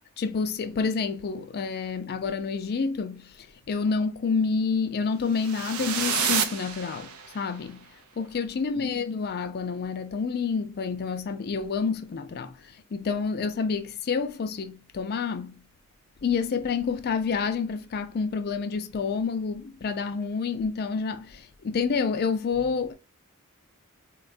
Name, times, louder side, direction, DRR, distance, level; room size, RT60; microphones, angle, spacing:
voice 1, 0.2-7.9 8.2-15.6 16.2-22.9, left 5 dB, 50° left, 0.4 m, -28 dB
sound 1, 5.3-7.5, right 7 dB, 90° right, 0.5 m, -29 dB
3.7 x 2.2 x 2.4 m
head